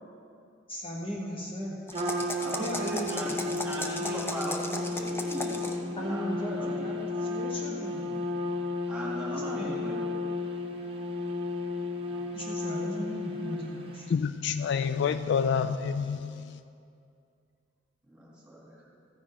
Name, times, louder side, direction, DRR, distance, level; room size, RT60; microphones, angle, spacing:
voice 1, 0.7-1.8 2.6-3.3 6.0-8.1 9.3-9.8 12.3-14.1, equal, 30° left, -2 dB, 1.1 m, -37 dB
sound 1, 1.9-5.9, left 2 dB, 10° left, 0.6 m, -36 dB
Trumpet, 1.9-14.1, left 2 dB, 30° right, 0.9 m, -33 dB
voice 2, 2.4-7.0 8.9-10.3 18.0-18.9, right 1 dB, 5° right, -6 dB, 2.9 m, -39 dB
voice 3, 14.1-16.6, left 6 dB, 65° left, 12 dB, 0.3 m, -28 dB
14.0 x 9.8 x 3.8 m, 2.5 s
head